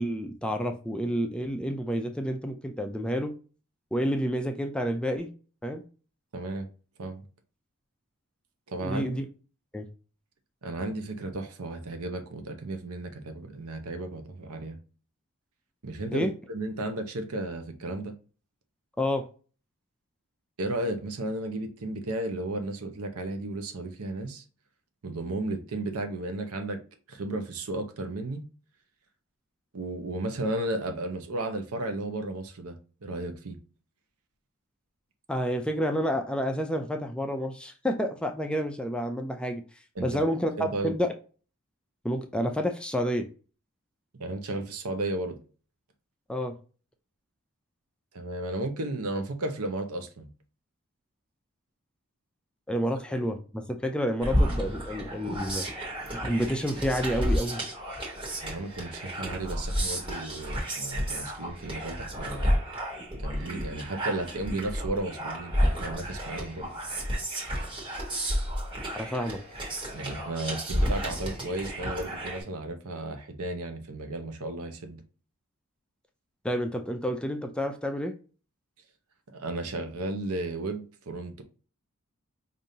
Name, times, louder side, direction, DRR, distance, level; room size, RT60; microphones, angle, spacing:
voice 1, 0.0-3.3 3.9-5.3 5.6-5.8 8.8-9.2 9.7-9.8 16.1-16.3 19.0-19.2 35.3-39.6 40.0-41.1 42.0-43.3 46.3-46.5 52.7-55.7 56.1-57.6 68.9-69.4 76.4-78.1, equal, 5° left, 0.4 m, -29 dB
voice 2, 6.3-6.7 7.0-7.3 8.7-9.2 10.6-14.8 15.8-18.1 20.6-24.4 25.0-26.8 27.1-28.4 29.7-32.8 33.0-33.6 40.0-40.2 40.6-40.9 44.2-45.4 48.1-50.3 58.4-62.6 63.1-66.7 69.9-75.0 79.3-81.4, right 2 dB, 85° right, 0.8 m, -34 dB
sound 1, 54.2-72.4, equal, 25° right, 1.3 m, -31 dB
5.0 x 2.6 x 2.7 m
head